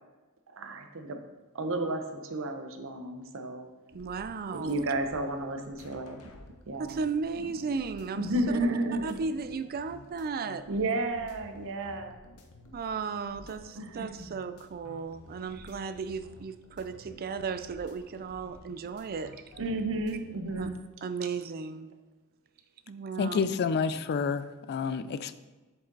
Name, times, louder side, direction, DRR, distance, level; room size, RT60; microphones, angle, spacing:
voice 1, 0.5-1.2 1.5-3.7 4.5-6.2 6.7-7.0 8.1-9.2 10.7-12.1 13.8-14.3 19.6-20.8, right 2 dB, 60° right, 0.8 m, -32 dB
sound 1, 3.9-20.7, left 1 dB, 70° left, 0.9 m, -53 dB
voice 2, 3.9-4.7 6.8-8.3 9.0-10.6 12.7-19.4 20.6-21.9 22.9-23.5, right 5 dB, 40° right, 0.4 m, -35 dB
voice 3, 23.2-25.4, left 5 dB, 50° left, 0.4 m, -29 dB
7.5 x 4.9 x 3.9 m
head